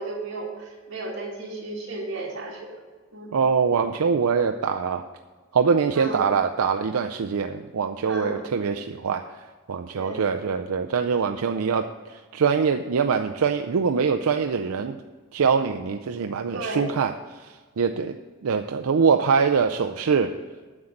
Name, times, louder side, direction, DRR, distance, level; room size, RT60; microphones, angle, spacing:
voice 1, 0.0-2.7 3.1-3.3 5.9-6.4 8.1-8.4 9.9-10.3 16.5-16.9, right 2 dB, 60° right, -3 dB, 2.6 m, -33 dB
voice 2, 3.3-5.0 5.5-9.2 9.7-15.0 15.3-17.1 17.4-18.2 18.4-20.3, right 6 dB, 90° right, 5 dB, 0.5 m, -23 dB
9.6 x 6.5 x 7.2 m, 1.4 s
head